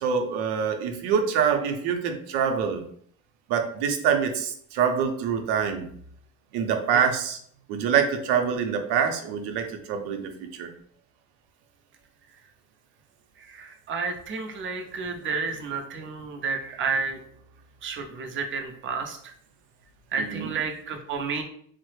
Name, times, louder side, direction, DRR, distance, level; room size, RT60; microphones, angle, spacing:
voice 1, 0.0-2.8 3.5-5.9 6.5-7.4 7.7-10.7 20.2-20.5, right 7 dB, 85° right, 5 dB, 0.6 m, -25 dB
voice 2, 13.5-17.2 17.8-19.3 20.1-21.4, right 5 dB, 35° right, 4 dB, 0.4 m, -31 dB
3.1 x 2.0 x 3.1 m, 0.62 s
cardioid pair, 150°, 38 cm